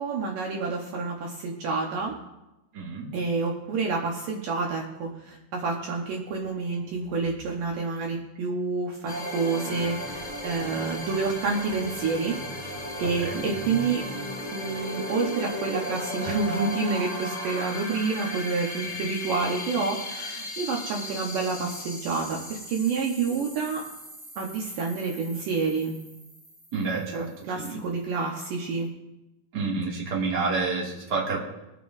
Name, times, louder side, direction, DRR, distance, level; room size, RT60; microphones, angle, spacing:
voice 1, 0.0-2.1 3.1-14.0 14.5-23.8 24.4-25.9 27.1-28.9, right 4 dB, 70° right, -1 dB, 2.6 m, -29 dB
voice 2, 2.7-3.1 13.2-13.4 26.7-27.8 29.5-31.4, right 4 dB, 30° right, -4 dB, 2.4 m, -29 dB
sound 1, 9.1-27.5, left 1 dB, 15° left, 5.4 m, -36 dB
23.5 x 9.4 x 2.7 m, 0.97 s
omnidirectional pair, 4.4 m